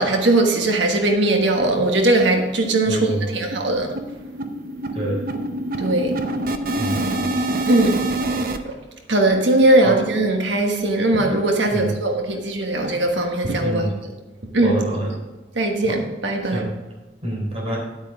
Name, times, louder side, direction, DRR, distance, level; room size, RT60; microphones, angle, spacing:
voice 1, 0.0-3.9 5.8-6.2 7.7-8.0 8.6-8.7 9.1-13.9 14.5-14.8 15.6-16.7, right 2 dB, 80° right, 1.3 m, -19 dB
sound 1, 1.3-1.4 1.7-1.8 2.2-2.4 2.6-8.6, right 1 dB, 50° right, 0.7 m, -26 dB
voice 2, 2.9-3.5 4.9-5.2 6.8-7.3 9.8-10.0 11.7-11.9 13.6-14.0 14.6-15.1 15.9-16.0 16.4-16.7 17.2-17.8, right 1 dB, 35° right, 3.6 m, -27 dB
10.0 x 9.2 x 3.6 m
head